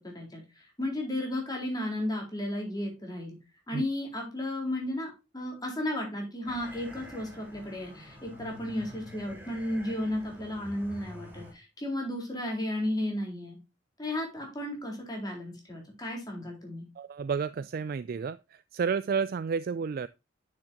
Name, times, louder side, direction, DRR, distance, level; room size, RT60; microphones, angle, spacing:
voice 1, 0.0-3.4 3.7-13.6 14.0-16.9, left 1 dB, 20° left, 3.8 m, -34 dB
sound 1, 6.4-11.5, equal, 10° right, 4.1 m, -48 dB
voice 2, 17.0-20.1, right 6 dB, 50° right, 0.3 m, -31 dB
9.8 x 6.4 x 2.8 m
head